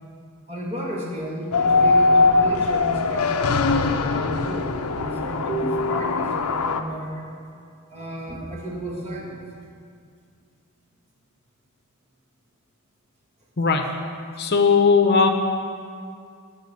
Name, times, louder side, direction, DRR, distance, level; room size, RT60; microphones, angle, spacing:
voice 1, 0.5-7.3 7.9-9.4, right 1 dB, 30° right, -2 dB, 2.0 m, -31 dB
sound 1, 1.5-6.8, left 3 dB, 90° left, 0.6 m, -21 dB
voice 2, 14.4-15.3, left 5 dB, 50° left, 5 dB, 0.8 m, -17 dB
12.0 x 5.8 x 8.1 m, 2.3 s
head